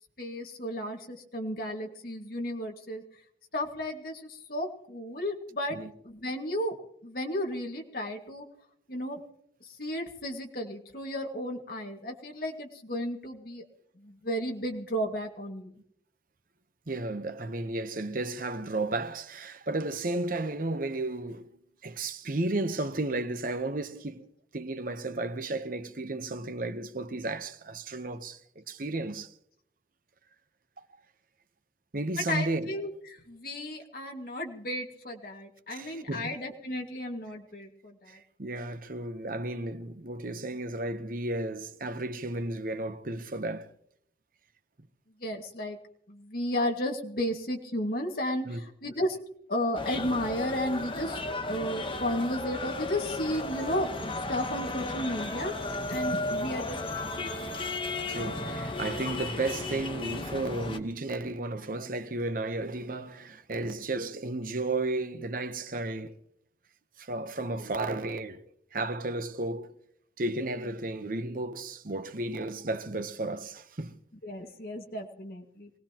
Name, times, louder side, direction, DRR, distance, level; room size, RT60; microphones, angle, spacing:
voice 1, 0.2-3.2 3.5-5.8 6.0-6.8 7.0-8.5 8.9-9.2 9.6-13.6 14.0-15.7 32.2-38.2 45.2-45.8 46.1-49.2 49.5-57.4 74.2-75.7, left 1 dB, 55° left, 2.0 m, -34 dB
voice 2, 16.9-21.5 21.8-29.3 30.8-30.9 31.9-32.7 35.7-36.3 38.1-43.7 48.4-48.6 58.1-66.1 67.0-69.8 70.2-74.0, right 2 dB, 50° right, 0.9 m, -33 dB
sound 1, 49.7-60.8, left 2 dB, 30° left, 1.1 m, -34 dB
24.5 x 18.0 x 3.0 m
head